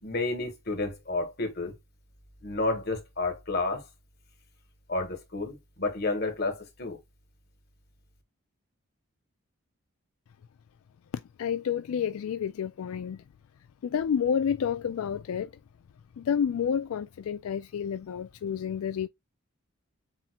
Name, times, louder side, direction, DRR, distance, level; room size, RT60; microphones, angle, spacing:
voice 1, 0.0-1.8 2.4-3.9 4.9-7.0, left 2 dB, 50° left, 1.8 m, -31 dB
voice 2, 11.1-13.2 13.8-15.5 16.2-19.1, left 7 dB, 80° left, 0.3 m, -30 dB
7.4 x 2.9 x 2.3 m
head